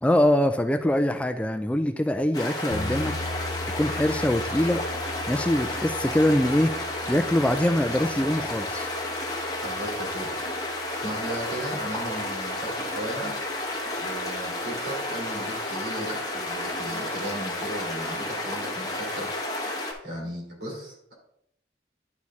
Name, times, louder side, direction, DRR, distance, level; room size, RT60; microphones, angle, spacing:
voice 1, 0.0-3.1 3.8-4.8 5.3-6.7 7.1-8.9, left 1 dB, 5° left, 8 dB, 0.3 m, -23 dB
sound 1, 2.3-19.9, left 1 dB, 20° left, 1.2 m, -31 dB
sound 2, 2.7-12.7, left 2 dB, 70° left, 0.5 m, -40 dB
voice 2, 9.6-10.4 10.9-13.5 14.0-21.1, right 1 dB, 80° right, -3 dB, 3.1 m, -36 dB
10.5 x 4.3 x 3.6 m, 0.73 s
head